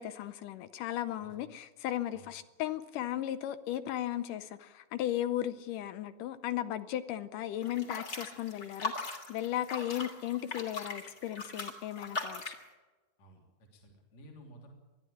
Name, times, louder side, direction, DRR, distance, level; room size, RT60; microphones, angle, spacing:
voice 1, 0.0-12.6, left 12 dB, 75° left, 13 dB, 2.2 m, -36 dB
sound 1, 7.6-12.6, left 3 dB, 30° left, 3.0 m, -39 dB
voice 2, 13.2-14.7, right 1 dB, 50° left, 2 dB, 4.0 m, -54 dB
21.5 x 13.5 x 10.0 m, 1.2 s
omnidirectional pair, 4.1 m